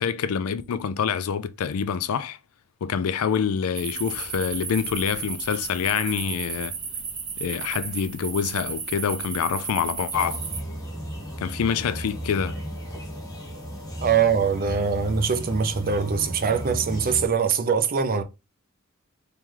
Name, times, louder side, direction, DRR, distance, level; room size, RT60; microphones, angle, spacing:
voice 1, 0.0-2.4 2.8-6.7 7.4-10.4 11.4-12.6, left 7 dB, 80° left, 0.4 m, -26 dB
sound 1, 3.7-10.6, right 5 dB, 20° right, 0.8 m, -34 dB
sound 2, 10.1-17.3, equal, 15° left, 1.2 m, -35 dB
voice 2, 14.0-18.2, right 6 dB, 45° right, 0.5 m, -23 dB
3.1 x 3.0 x 3.6 m
head